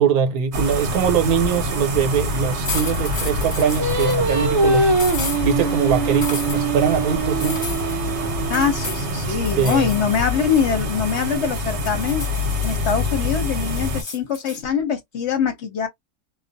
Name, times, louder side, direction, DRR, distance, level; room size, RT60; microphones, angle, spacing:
voice 1, 0.0-4.9 5.4-7.6 9.2-9.9, right 7 dB, 80° right, 1.2 m, -22 dB
sound 1, 0.5-14.0, left 1 dB, 55° right, 1.0 m, -26 dB
sound 2, 2.6-4.2 4.9-5.4 6.2-6.6 7.4-8.0 8.5-9.0 9.4-10.0 10.3-11.5 11.8-12.9 13.3-14.6, left 3 dB, 20° left, 0.9 m, -32 dB
Singing, 3.8-9.1, right 3 dB, 40° right, 0.5 m, -23 dB
voice 2, 8.5-12.2 12.6-15.9, left 7 dB, 60° left, 0.8 m, -23 dB
2.4 x 2.3 x 2.5 m
omnidirectional pair, 1.6 m